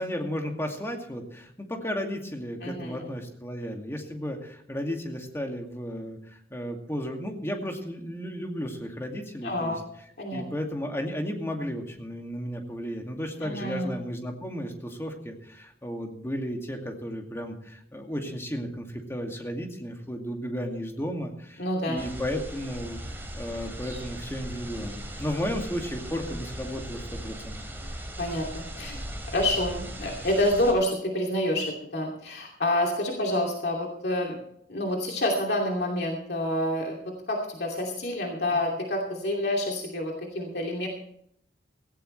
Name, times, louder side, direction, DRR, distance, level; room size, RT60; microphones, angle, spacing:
voice 1, 0.0-9.8 10.3-27.6, equal, 15° left, 2 dB, 2.3 m, -34 dB
voice 2, 2.6-3.0 9.4-9.8 10.2-10.4 13.4-13.9 21.6-22.0 28.2-29.0 29.3-34.3 34.7-37.0 37.3-40.9, left 1 dB, 65° left, 0 dB, 2.7 m, -28 dB
sound 1, 22.0-30.7, right 1 dB, 15° right, 3.0 m, -38 dB
17.0 x 16.5 x 3.3 m, 0.71 s
head